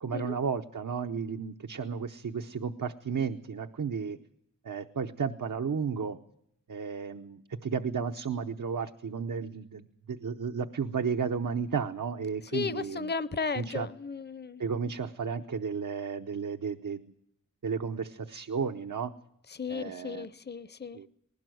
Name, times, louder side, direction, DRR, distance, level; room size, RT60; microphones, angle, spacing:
voice 1, 0.0-4.2 4.6-6.2 6.7-13.1 13.5-13.9 14.6-17.0 17.6-19.1 19.7-20.3 20.9-21.1, right 6 dB, 80° right, 0.9 m, -33 dB
voice 2, 12.5-14.6 19.5-21.0, left 5 dB, 35° left, 0.7 m, -35 dB
20.0 x 17.0 x 7.8 m
wide cardioid pair, 65°, 32 cm